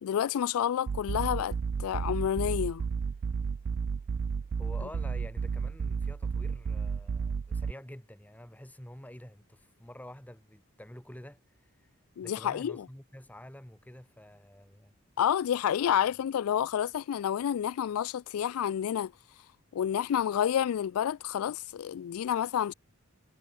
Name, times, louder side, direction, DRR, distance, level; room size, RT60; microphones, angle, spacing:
voice 1, 0.0-2.8 12.2-12.9 15.2-19.1 19.7-22.7, left 9 dB, 75° left, 0.3 m, -29 dB
sound 1, 0.9-7.7, right 5 dB, 50° right, 0.3 m, -32 dB
voice 2, 4.6-11.9 12.2-14.9, left 1 dB, 5° left, 1.3 m, -48 dB
head